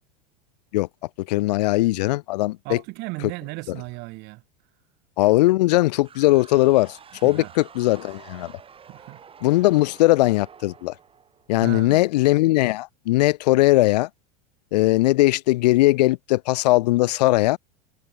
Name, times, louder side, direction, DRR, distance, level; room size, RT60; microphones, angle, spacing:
voice 1, 1.3-2.8 5.2-7.0 7.2-8.5 9.4-10.9 11.5-14.1 14.7-17.6, left 18 dB, 75° left, 0.4 m, -19 dB
voice 2, 2.6-4.4 7.2-7.5 8.9-9.2 11.6-12.1, right 25 dB, 55° right, 0.9 m, -35 dB
sound 1, 6.0-11.8, right 7 dB, 25° right, 3.0 m, -48 dB
hypercardioid pair, 95°, 21 cm